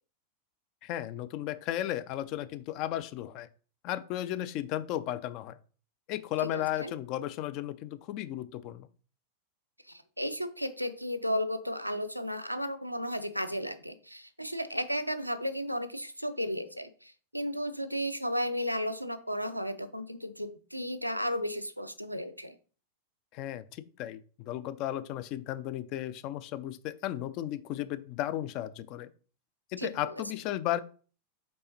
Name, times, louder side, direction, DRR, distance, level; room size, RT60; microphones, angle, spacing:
voice 1, 0.8-3.5 3.8-5.6 6.1-8.9 23.3-29.1 29.7-30.8, left 13 dB, 40° left, 14 dB, 0.4 m, -35 dB
voice 2, 6.5-6.9 9.9-22.6 29.8-30.2, equal, 90° right, 9 dB, 0.5 m, -34 dB
5.3 x 4.2 x 4.4 m, 0.39 s
figure-of-eight pair, 90°, 0 cm